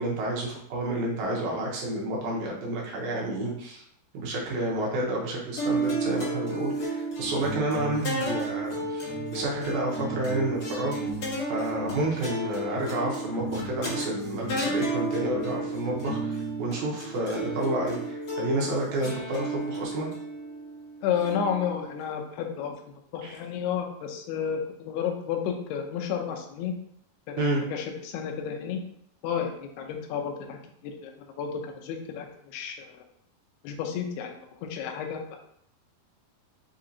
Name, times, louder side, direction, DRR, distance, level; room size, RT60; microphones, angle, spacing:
voice 1, 0.0-3.8 4.1-11.0 11.5-20.1 23.2-23.4 27.4-27.6, right 1 dB, 75° right, -2 dB, 1.8 m, -30 dB
sound 1, 5.6-22.0, right 2 dB, 45° left, 2.0 m, -33 dB
sound 2, 7.2-8.5 8.8-16.9, right 2 dB, 65° left, 2.5 m, -39 dB
voice 2, 21.0-22.7 23.1-26.7 27.3-27.4 27.7-28.8 29.2-33.0 33.6-35.4, left 7 dB, 80° left, 3 dB, 2.5 m, -32 dB
6.4 x 2.9 x 2.7 m, 0.68 s
omnidirectional pair, 4.7 m